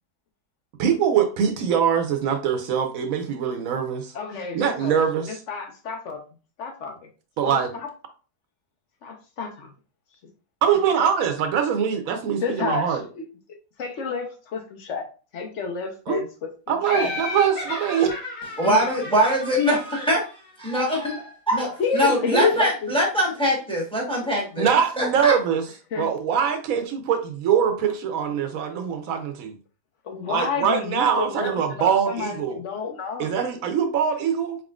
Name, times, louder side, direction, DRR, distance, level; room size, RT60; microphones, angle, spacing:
voice 1, 0.8-4.1 4.5-5.4 7.4-7.7 10.6-13.0 16.1-16.2 16.7-18.1 24.6-25.6 26.0-29.5 30.3-32.6 33.2-34.6, right 7 dB, 80° right, 1.0 m, -23 dB
voice 2, 4.1-5.0 5.3-6.2 6.6-6.9 7.4-7.9 9.0-9.7 12.4-13.3 13.8-15.1 15.3-16.3 16.9-17.1 18.6-18.8 21.8-22.9 25.9-26.1 30.0-33.4, left 5 dB, 60° left, 1.1 m, -29 dB
Laughter, 16.8-20.5, left 2 dB, 75° left, 1.8 m, -34 dB
voice 3, 18.6-20.2 20.6-25.4, equal, 5° left, 1.1 m, -23 dB
4.1 x 3.6 x 2.3 m
omnidirectional pair, 1.4 m